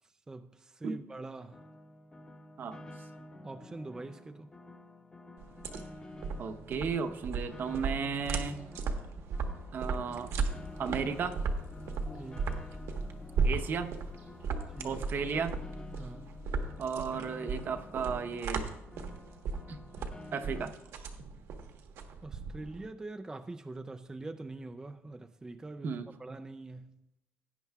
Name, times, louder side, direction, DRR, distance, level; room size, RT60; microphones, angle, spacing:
voice 1, 0.0-1.6 3.4-4.5 12.1-12.6 14.8-15.0 16.0-16.3 22.2-27.0, right 2 dB, 15° right, 0.4 m, -44 dB
Piano, 1.5-20.7, left 1 dB, 20° left, 1.0 m, -50 dB
sound 1, 5.4-22.9, right 4 dB, 75° right, 1.2 m, -36 dB
voice 2, 6.4-8.6 9.7-10.3 10.8-11.4 13.4-13.9 14.8-15.6 16.8-18.7 19.7-19.8 20.3-21.1 25.8-26.1, right 6 dB, 50° right, 0.8 m, -34 dB
sound 2, 10.1-18.0, left 2 dB, 45° left, 1.4 m, -48 dB
17.0 x 9.5 x 2.3 m
cardioid pair, 130°, 5 cm